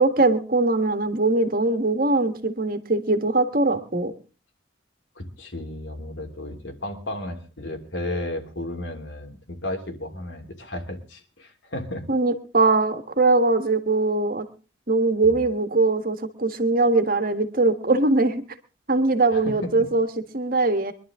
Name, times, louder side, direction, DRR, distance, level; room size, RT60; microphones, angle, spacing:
voice 1, 0.0-4.1 12.1-14.5 14.9-18.4 18.9-20.1 20.3-20.9, right 3 dB, 45° right, 9 dB, 1.6 m, -21 dB
voice 2, 5.2-12.0 15.2-15.4 19.3-19.5, left 1 dB, 70° left, 3 dB, 2.9 m, -33 dB
23.5 x 11.5 x 3.7 m, 0.35 s
head